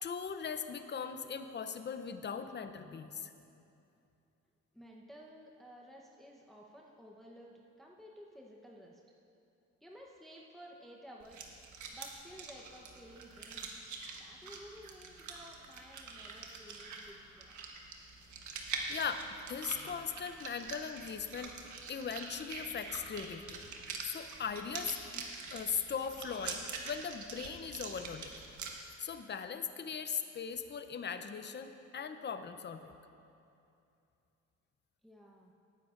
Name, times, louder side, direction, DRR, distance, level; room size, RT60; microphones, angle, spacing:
voice 1, 0.0-3.3 18.9-21.5 21.9-23.7 24.0-25.3 25.5-28.3 29.0-33.0, left 6 dB, 35° left, 9 dB, 0.7 m, -39 dB
voice 2, 4.7-9.0 9.8-13.7 14.2-17.6 35.0-35.5, equal, ahead, -2 dB, 0.9 m, -54 dB
sound 1, 11.2-28.7, right 4 dB, 70° right, 1.3 m, -45 dB
18.5 x 9.4 x 2.5 m, 2.7 s
cardioid pair, 90°, 30 cm